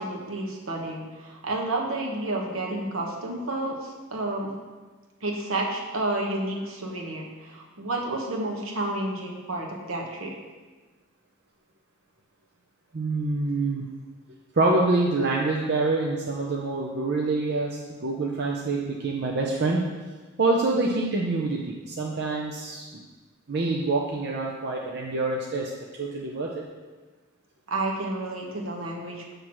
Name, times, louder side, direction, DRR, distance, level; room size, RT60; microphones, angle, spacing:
voice 1, 0.0-4.5 5.2-10.3 27.7-29.3, right 2 dB, 75° right, -1 dB, 1.1 m, -30 dB
voice 2, 12.9-13.8 14.6-19.8 20.4-22.8 23.5-25.7 26.0-26.5, right 3 dB, 50° right, -2 dB, 0.6 m, -26 dB
7.3 x 3.4 x 6.1 m, 1.3 s
head